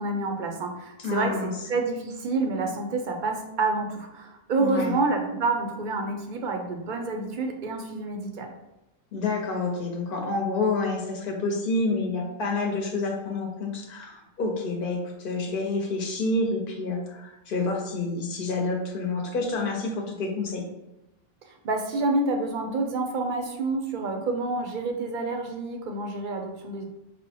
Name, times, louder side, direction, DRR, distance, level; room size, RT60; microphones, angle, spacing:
voice 1, 0.0-8.5 21.5-26.8, right 3 dB, 60° right, 3 dB, 0.6 m, -28 dB
voice 2, 1.0-1.5 4.6-5.0 9.1-15.0 15.2-20.7, left 3 dB, 55° left, 1 dB, 0.8 m, -28 dB
4.9 x 2.1 x 2.8 m, 0.94 s
omnidirectional pair, 1.1 m